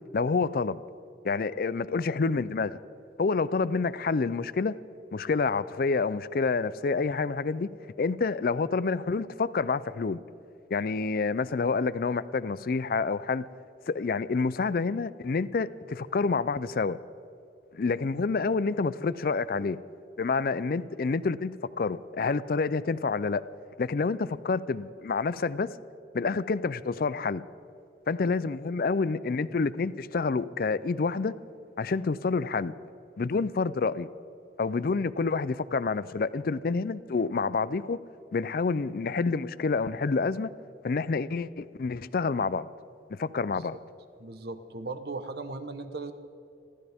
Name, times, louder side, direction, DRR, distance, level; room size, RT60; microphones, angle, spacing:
voice 1, 0.1-0.8 1.2-2.8 3.2-4.8 5.1-7.7 8.0-10.2 10.7-13.4 13.9-17.0 17.7-19.8 20.2-23.4 23.8-25.7 26.1-27.4 28.1-31.4 31.8-32.7 33.2-34.1 34.6-38.0 38.3-40.5 40.8-42.7 43.1-43.8, left 4 dB, 55° left, 17 dB, 0.4 m, -28 dB
voice 2, 44.2-46.1, right 3 dB, 60° right, 10 dB, 1.0 m, -37 dB
28.0 x 13.5 x 3.6 m, 2.8 s
head